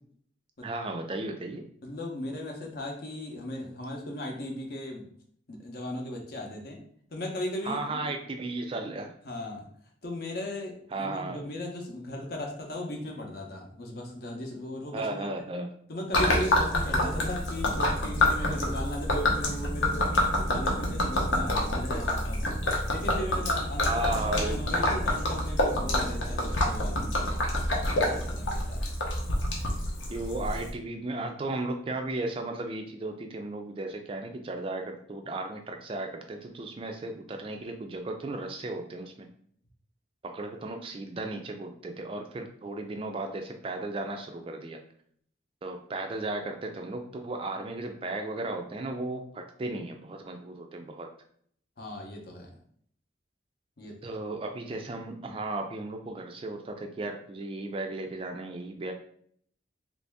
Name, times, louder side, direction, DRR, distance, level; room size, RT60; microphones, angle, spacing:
voice 1, 0.6-1.6 7.6-9.1 10.9-11.5 14.9-15.7 23.8-24.6 30.1-39.3 40.2-44.8 45.6-51.1 54.0-58.9, right 2 dB, 30° right, 4 dB, 0.3 m, -35 dB
voice 2, 1.8-5.0 5.5-6.8 7.1-8.0 9.3-9.7 10.0-15.3 15.9-27.5 27.9-28.8 51.8-52.5 53.8-54.0, left 1 dB, 50° left, 1 dB, 0.7 m, -37 dB
Gurgling / Liquid, 16.1-30.7, left 1 dB, 90° left, 0.8 m, -27 dB
3.0 x 2.6 x 3.4 m, 0.64 s
head